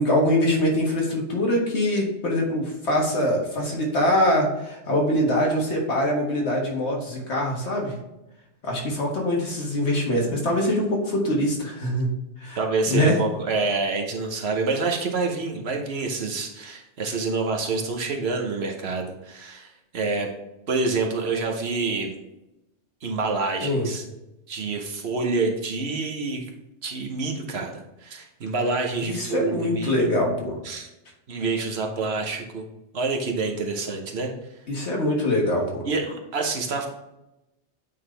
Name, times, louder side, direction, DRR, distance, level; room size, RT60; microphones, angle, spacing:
voice 1, 0.0-7.9 8.6-12.1 12.4-12.6 12.9-13.2 23.6-23.9 29.0-30.6 34.7-35.9, left 1 dB, 70° left, -1 dB, 1.8 m, -23 dB
voice 2, 12.5-20.3 20.7-22.1 23.0-24.0 24.5-26.5 26.8-30.1 30.6-30.9 31.3-32.7 32.9-34.3 35.8-36.9, right 3 dB, 65° right, 2 dB, 1.1 m, -27 dB
8.6 x 3.9 x 3.3 m, 0.94 s
omnidirectional pair, 1.2 m